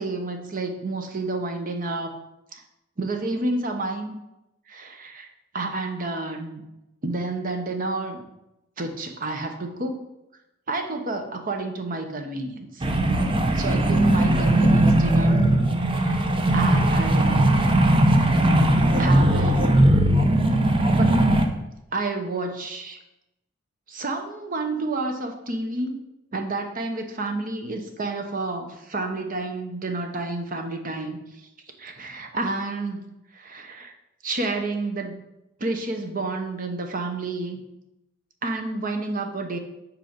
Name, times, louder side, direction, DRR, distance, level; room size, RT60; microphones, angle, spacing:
voice 1, 0.0-2.2 2.5-2.6 3.0-4.1 4.7-6.6 7.0-8.2 8.8-10.0 10.7-12.9 13.5-15.4 15.9-16.3 16.5-17.5 19.0-19.9 20.9-21.2 21.9-23.0 23.9-26.0 26.3-31.5 31.8-33.9 34.2-35.2 35.6-37.6 38.4-39.6, right 2 dB, 45° right, 5 dB, 1.0 m, -30 dB
sound 1, 12.8-21.5, right 1 dB, 25° right, 0.7 m, -19 dB
7.9 x 4.6 x 5.2 m, 0.91 s
head